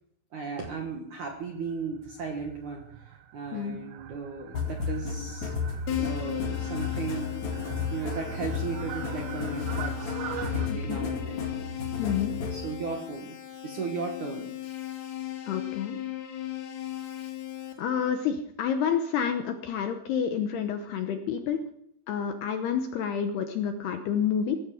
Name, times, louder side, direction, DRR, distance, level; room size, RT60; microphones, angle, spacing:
voice 1, 0.3-5.5 6.0-7.3 7.9-10.1 10.5-11.4 12.5-13.4 13.6-14.5, right 5 dB, 60° right, 2 dB, 2.1 m, -36 dB
Fowl, 1.3-10.7, right 10 dB, 90° right, 3.7 m, -43 dB
sound 1, 4.5-12.6, left 5 dB, 45° left, 3.2 m, -33 dB
Keyboard (musical), 5.9-17.7, left 13 dB, 60° left, 3.3 m, -37 dB
voice 2, 10.7-11.1 12.0-12.3 15.5-16.0 17.8-21.6 22.1-24.6, left 7 dB, 75° left, 6 dB, 2.5 m, -29 dB
17.0 x 14.0 x 5.0 m, 0.69 s
omnidirectional pair, 5.6 m